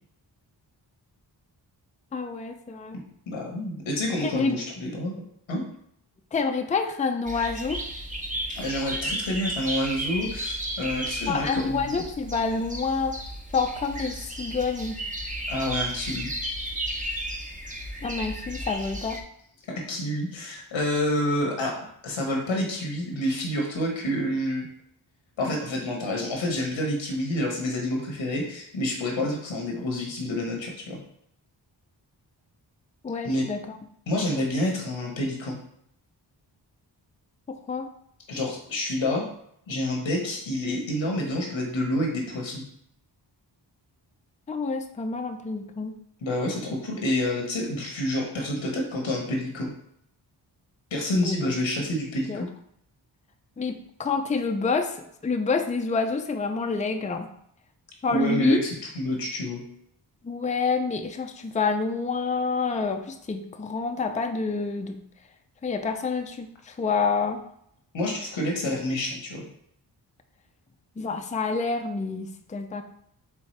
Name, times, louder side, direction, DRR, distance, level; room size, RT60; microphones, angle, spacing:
voice 1, 2.1-3.0 4.2-4.6 6.3-7.8 11.3-13.2 13.5-15.0 18.0-19.2 33.0-33.8 37.5-37.9 44.5-46.0 51.1-51.5 52.3-52.4 53.6-55.0 55.2-57.3 58.0-58.6 60.2-65.0 65.6-67.4 71.0-72.8, left 4 dB, 15° left, 6 dB, 0.5 m, -28 dB
voice 2, 3.3-5.2 5.5-5.6 8.6-11.9 15.5-16.3 19.7-24.6 25.4-31.0 33.2-33.5 34.1-35.6 38.3-39.3 39.7-42.6 46.2-49.7 50.9-52.5 58.1-59.6 67.9-69.5, left 1 dB, 90° left, 1 dB, 1.2 m, -28 dB
sound 1, 7.3-19.2, right 1 dB, 15° right, 0.8 m, -34 dB
4.5 x 3.4 x 3.2 m, 0.71 s
cardioid pair, 45°, 45 cm